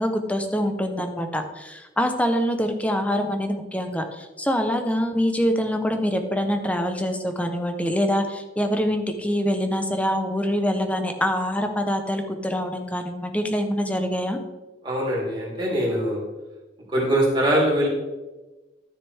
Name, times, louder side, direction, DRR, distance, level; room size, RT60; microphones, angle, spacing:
voice 1, 0.0-14.4, equal, 10° left, 6 dB, 0.9 m, -25 dB
voice 2, 14.8-16.2 16.9-17.9, right 1 dB, 30° right, -5 dB, 3.7 m, -22 dB
12.5 x 6.8 x 3.5 m, 1.1 s
head